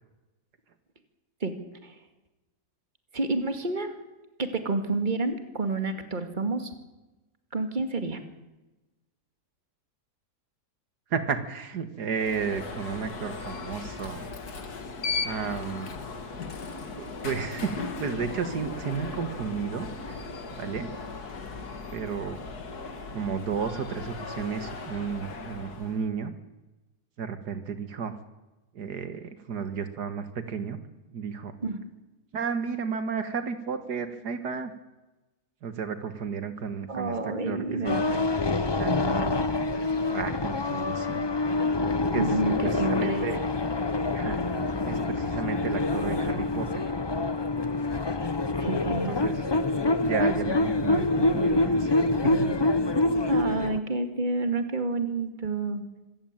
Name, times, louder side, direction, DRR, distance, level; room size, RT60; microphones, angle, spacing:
voice 1, 3.1-3.9 4.4-6.7 7.5-8.2 31.6-31.9 36.9-38.0 42.1-42.5 42.8-43.3 48.6-49.2 53.3-55.8, right 3 dB, 30° right, 7 dB, 2.3 m, -29 dB
voice 2, 11.1-14.3 15.2-16.0 17.0-20.2 20.6-20.9 21.9-22.4 23.1-26.3 27.2-28.1 28.7-30.8 31.1-31.5 32.3-34.7 35.6-37.2 37.4-38.2 38.8-39.4 40.1-41.2 42.1-43.4 44.1-44.4 44.8-47.0 48.9-49.5 50.0-51.9 52.2-52.5, right 6 dB, 80° right, 10 dB, 2.1 m, -33 dB
Alarm, 12.1-26.0, left 4 dB, 70° left, 2.5 m, -37 dB
sound 1, 37.8-53.8, left 2 dB, 30° left, 0.4 m, -26 dB
25.5 x 15.0 x 9.0 m, 1.1 s
omnidirectional pair, 1.7 m